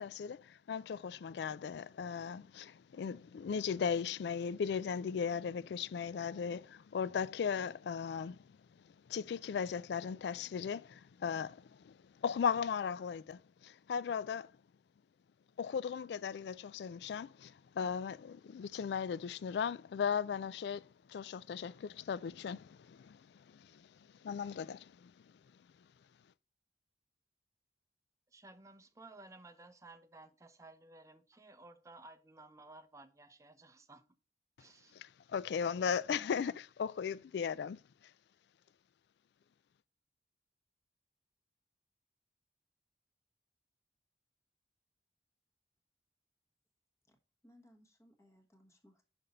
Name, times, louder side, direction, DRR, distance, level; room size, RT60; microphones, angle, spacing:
voice 1, 0.0-8.6 9.1-14.5 15.6-23.9 24.2-25.1 34.9-37.8, left 6 dB, 65° left, 0.3 m, -37 dB
voice 2, 28.3-34.0 34.6-35.0, right 2 dB, 15° right, 0.6 m, -56 dB
voice 3, 47.4-49.0, left 1 dB, 15° left, 1.2 m, -64 dB
5.8 x 5.2 x 4.0 m
head